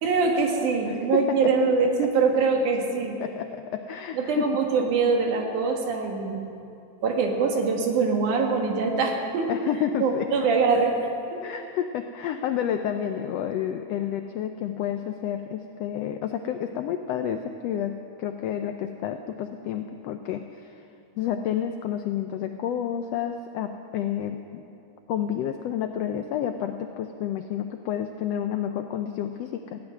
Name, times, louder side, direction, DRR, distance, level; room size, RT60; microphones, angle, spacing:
voice 1, 0.0-3.2 4.1-6.4 7.0-9.5 10.0-10.9 11.3-11.4, right 4 dB, 80° right, 2 dB, 3.1 m, -23 dB
voice 2, 0.9-1.2 2.0-2.1 3.2-4.5 9.5-10.2 11.4-20.7 21.2-24.6 25.1-29.8, left 9 dB, 80° left, 7 dB, 1.4 m, -30 dB
15.5 x 8.7 x 9.6 m, 2.6 s
omnidirectional pair, 3.5 m